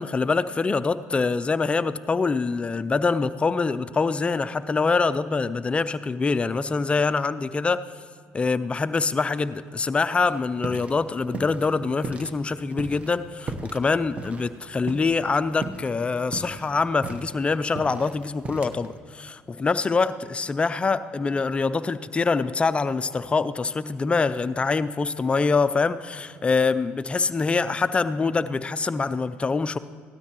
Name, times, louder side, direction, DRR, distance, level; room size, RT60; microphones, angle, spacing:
voice 1, 0.0-7.8 8.3-29.8, left 4 dB, 25° left, 13 dB, 0.5 m, -24 dB
sound 1, 10.2-11.0 11.3-12.3 12.7-15.3 15.6-15.9 16.2-18.9, right 2 dB, 30° right, 1.1 m, -36 dB
17.0 x 13.0 x 3.0 m, 2.1 s
supercardioid pair, 80°, 5 cm